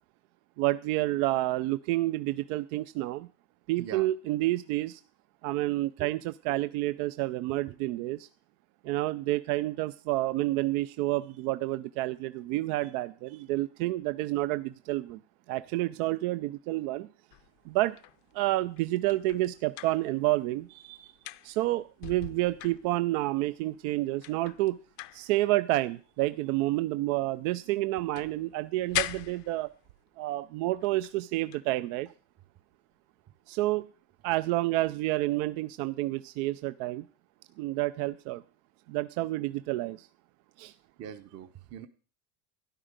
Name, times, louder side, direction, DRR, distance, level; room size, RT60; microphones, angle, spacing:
voice 1, 0.6-3.3 3.7-5.0 5.4-8.3 8.8-15.2 15.5-17.1 17.7-18.0 18.3-21.1 21.4-24.8 25.1-29.7 30.2-32.1 33.5-33.8 34.2-37.1 37.6-38.4 38.9-40.1 40.6-40.7, right 17 dB, 75° right, 14 dB, 0.6 m, -29 dB
sound 1, 17.3-20.7 20.9-23.4 23.9-24.0 24.2-27.5 27.8-30.1 30.8-31.2 31.5-31.7 34.8-35.0, left 19 dB, 65° left, 0.7 m, -41 dB
voice 2, 41.0-41.9, right 9 dB, 35° right, 8 dB, 0.8 m, -42 dB
13.0 x 10.0 x 5.1 m, 0.38 s
supercardioid pair, 120°, 44 cm